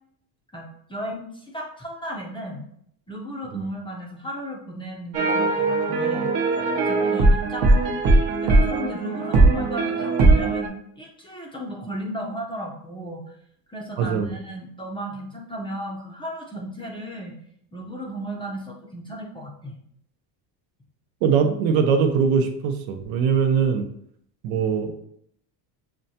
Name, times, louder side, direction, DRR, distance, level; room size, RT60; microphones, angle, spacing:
voice 1, 0.5-2.6 3.1-6.3 6.8-13.2 13.7-17.3 17.7-19.8, equal, 10° left, -2 dB, 0.5 m, -35 dB
sound 1, 5.1-10.7, right 2 dB, 50° right, 0.8 m, -19 dB
voice 2, 14.0-14.4 21.2-23.9 24.4-25.0, right 6 dB, 80° right, 5 dB, 0.8 m, -22 dB
6.1 x 2.2 x 2.7 m, 0.69 s
cardioid pair, 125°, 49 cm